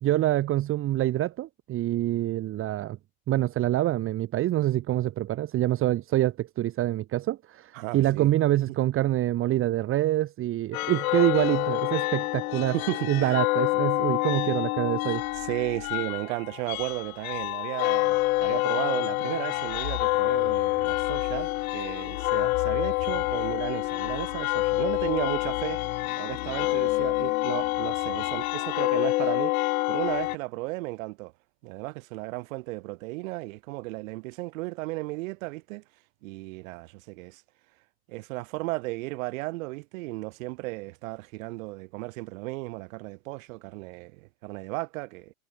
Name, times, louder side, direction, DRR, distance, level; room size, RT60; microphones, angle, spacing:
voice 1, 0.0-3.0 3.3-12.7 13.1-15.2, right 14 dB, 30° right, 1.1 m, -26 dB
voice 2, 7.7-8.3 8.7-8.8 12.7-13.4 15.3-25.9 26.2-29.6 29.9-31.3 31.6-35.8 36.2-37.4 38.1-45.3, right 23 dB, 65° right, 7.8 m, -34 dB
sound 1, 10.7-30.4, left 20 dB, 75° left, 0.6 m, -27 dB
supercardioid pair, 125°, 43 cm